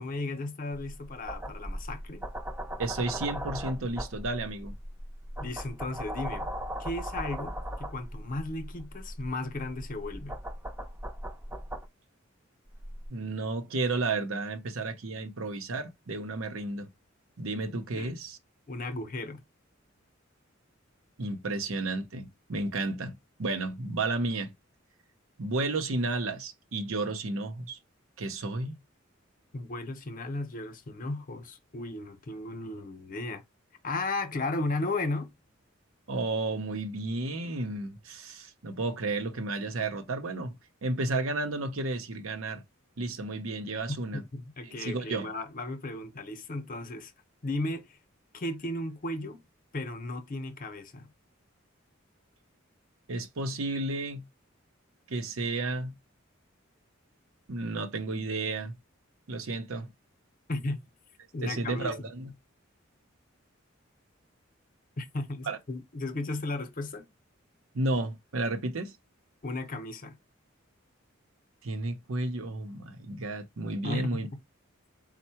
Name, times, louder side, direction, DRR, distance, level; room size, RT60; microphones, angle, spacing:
voice 1, 0.0-2.2 5.4-6.5 6.8-10.4 17.9-18.2 18.7-19.4 29.5-33.4 33.8-35.4 43.9-47.1 47.4-48.0 48.3-49.4 49.7-51.1 60.5-60.8 61.3-61.9 65.0-67.1 69.4-70.2 73.8-74.2, left 2 dB, 45° left, 0.7 m, -35 dB
sound 1, 0.7-11.9 12.7-13.1, equal, 10° right, 0.5 m, -39 dB
voice 2, 2.8-4.7 13.1-16.9 17.4-18.4 21.2-24.5 25.4-27.8 28.2-28.8 36.1-42.6 43.0-44.2 44.7-45.3 53.1-54.3 55.1-56.0 57.5-58.8 59.3-59.9 61.4-62.3 65.5-65.6 67.7-68.9 71.6-74.3, right 2 dB, 90° right, 0.8 m, -32 dB
4.5 x 2.1 x 4.2 m
head